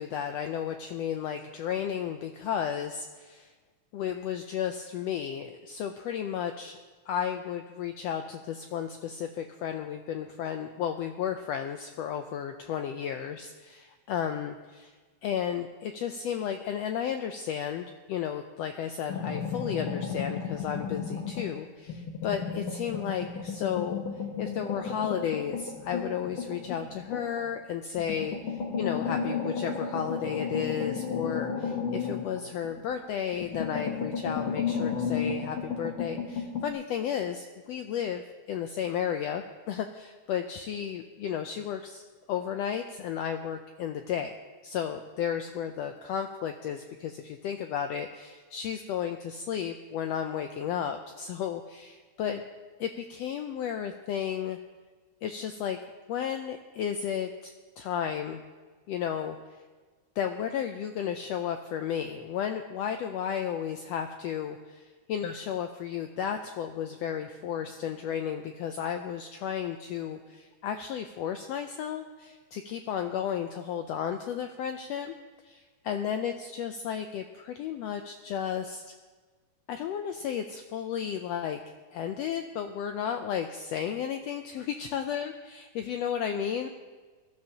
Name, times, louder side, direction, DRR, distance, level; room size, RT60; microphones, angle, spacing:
voice 1, 0.0-3.5 3.9-14.9 15.2-24.0 24.4-42.0 42.3-44.3 44.6-52.4 52.8-54.6 55.2-55.8 56.1-58.4 58.9-59.4 60.2-75.1 75.4-78.9 79.7-81.6 81.9-86.7, left 8 dB, 90° left, 6 dB, 1.4 m, -33 dB
sound 1, 19.1-21.5 21.9-27.5 28.0-33.0 33.3-36.7, left 6 dB, 50° left, 1.7 m, -33 dB
20.0 x 13.0 x 2.9 m, 1.4 s
omnidirectional pair, 3.5 m